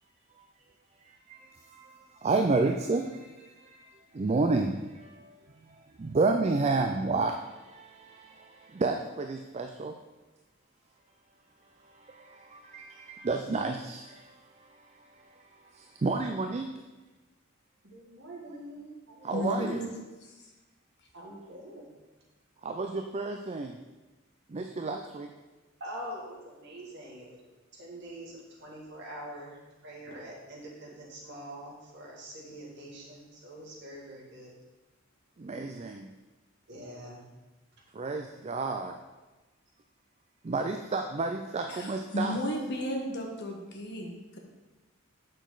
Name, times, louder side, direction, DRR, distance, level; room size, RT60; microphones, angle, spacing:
voice 1, 1.0-10.0 11.8-16.7 19.2-19.9 22.6-23.8 24.5-25.3 35.4-36.1 37.9-39.0 40.4-42.4, right 3 dB, 30° right, 4 dB, 0.4 m, -31 dB
voice 2, 17.8-19.6 21.1-22.0 25.8-27.4 27.7-34.5 36.7-37.2 37.7-37.8, equal, 60° right, -3 dB, 2.2 m, -44 dB
voice 3, 19.3-19.9 20.2-20.5 41.7-44.4, equal, 55° left, 1 dB, 1.4 m, -34 dB
8.1 x 6.5 x 4.0 m, 1.2 s
head